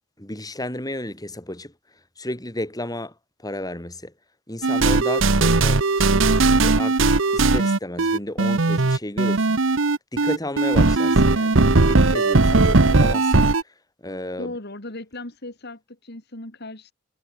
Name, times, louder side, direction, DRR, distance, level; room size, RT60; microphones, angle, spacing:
voice 1, 0.2-1.7 2.2-3.1 3.4-4.1 4.5-9.6 10.1-13.3 14.0-14.5, left 1 dB, 20° left, 7.5 m, -32 dB
sound 1, 4.6-13.6, right 3 dB, 65° right, 1.2 m, -18 dB
voice 2, 14.4-16.9, left 2 dB, 55° left, 3.3 m, -37 dB
head